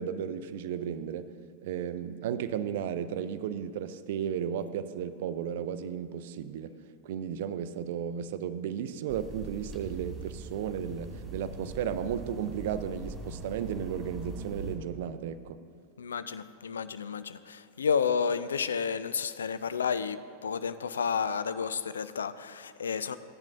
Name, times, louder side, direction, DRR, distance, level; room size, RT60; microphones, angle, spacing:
voice 1, 0.0-1.4 1.6-15.6, right 8 dB, 55° right, 13 dB, 0.4 m, -34 dB
sound 1, 9.1-14.8, right 2 dB, 10° right, 2.5 m, -42 dB
voice 2, 16.0-23.2, left 6 dB, 70° left, 13 dB, 0.3 m, -31 dB
15.0 x 10.0 x 2.5 m, 2.2 s
figure-of-eight pair, 90°, 0 cm